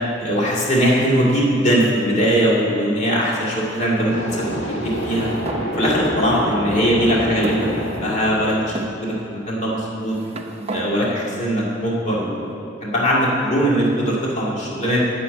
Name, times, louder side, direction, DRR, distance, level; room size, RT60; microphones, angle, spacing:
voice 1, 0.2-5.3 5.7-8.7 9.0-10.1 10.7-12.5 12.8-15.0, equal, 40° left, -5 dB, 2.1 m, -20 dB
sound 1, 4.1-9.8, equal, 65° left, 2.0 m, -28 dB
sound 2, 4.8-5.7 6.5-6.6 7.4-8.3 8.7-8.9 9.8-10.9, right 2 dB, 35° right, 0.7 m, -33 dB
8.4 x 7.0 x 8.6 m, 2.5 s
head